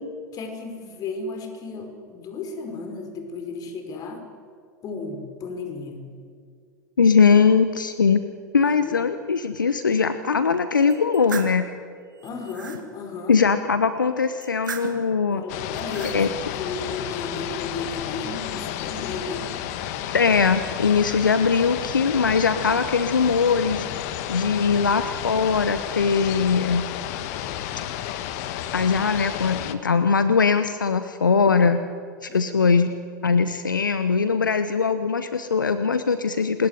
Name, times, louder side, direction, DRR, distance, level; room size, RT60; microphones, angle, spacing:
voice 1, 0.3-4.2 4.8-6.1 8.6-9.0 12.2-13.4 15.3-19.5 32.3-32.4, left 3 dB, 35° left, 6 dB, 5.3 m, -34 dB
voice 2, 7.0-8.2 8.5-11.7 13.3-15.4 16.1-16.3 20.1-23.9 24.3-26.9 28.7-31.8 32.2-32.9 33.2-36.7, left 5 dB, 85° left, 11 dB, 1.1 m, -21 dB
sound 1, 10.9-11.6 12.2-12.8 14.4-15.1 15.7-16.2, right 6 dB, 80° right, 3.0 m, -36 dB
sound 2, 15.5-29.8, left 11 dB, 55° left, 1.8 m, -32 dB
26.5 x 20.5 x 9.8 m, 2.2 s
figure-of-eight pair, 90°, 10 cm